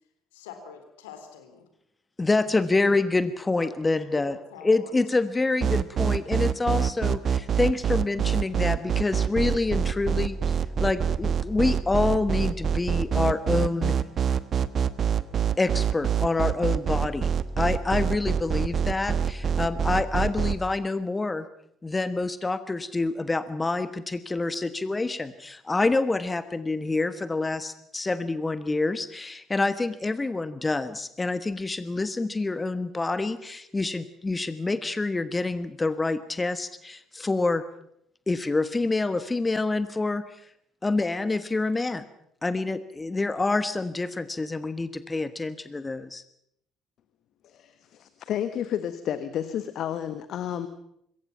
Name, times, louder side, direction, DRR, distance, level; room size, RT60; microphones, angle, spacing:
voice 1, 0.3-1.7 3.6-3.8 4.2-4.9, left 7 dB, 70° left, 7 dB, 3.7 m, -45 dB
voice 2, 2.2-13.9 15.6-21.5 21.8-37.6 38.3-40.5 40.8-42.0 42.4-46.2, left 3 dB, 20° left, 13 dB, 1.2 m, -27 dB
sound 1, 5.6-20.6, right 8 dB, 40° right, 1.2 m, -25 dB
voice 3, 47.4-50.7, left 10 dB, 50° left, 11 dB, 1.4 m, -31 dB
25.5 x 22.5 x 5.8 m, 0.73 s
figure-of-eight pair, 50°, 0 cm